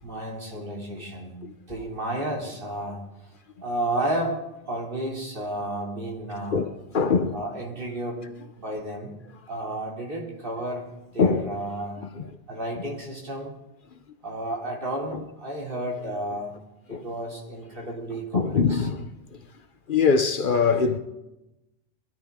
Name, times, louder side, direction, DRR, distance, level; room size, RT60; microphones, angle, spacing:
voice 1, 0.0-3.1 3.6-6.6 7.3-8.3 8.6-9.2 9.5-12.0 12.5-13.6 14.2-16.6 16.9-18.9, right 1 dB, 55° right, 3.1 m, -32 dB
voice 2, 6.5-7.4 11.2-11.5 12.2-12.3 15.1-15.2 16.9-17.1 18.3-19.1 19.9-21.0, left 5 dB, 55° left, 0.9 m, -23 dB
22.0 x 13.5 x 3.6 m
omnidirectional pair, 1.1 m